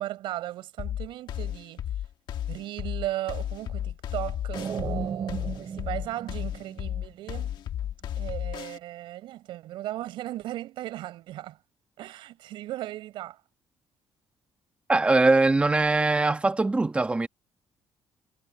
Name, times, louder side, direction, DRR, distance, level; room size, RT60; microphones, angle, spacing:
voice 1, 0.0-1.8 2.5-7.6 8.2-11.6 12.0-13.4, right 14 dB, 85° right, 5.5 m, -36 dB
sound 1, 0.8-8.8, left 11 dB, 70° left, 1.6 m, -33 dB
sound 2, 4.5-7.3, right 7 dB, 45° right, 7.7 m, -35 dB
voice 2, 14.9-17.3, right 3 dB, 15° right, 1.2 m, -22 dB
cardioid pair, 130°, 8 cm